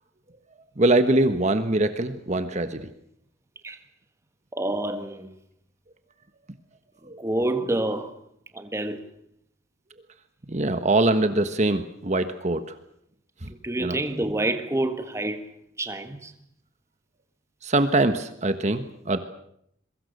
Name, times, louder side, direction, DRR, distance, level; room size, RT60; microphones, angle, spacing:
voice 1, 0.8-2.9 7.1-7.2 10.5-12.6 13.4-13.5 13.8-14.0 17.6-19.2, right 2 dB, 35° right, 1.3 m, -23 dB
voice 2, 4.5-5.3 7.2-8.1 8.5-9.1 13.6-15.5 15.8-16.3, right 1 dB, 15° right, 1.6 m, -27 dB
27.0 x 23.0 x 6.7 m
head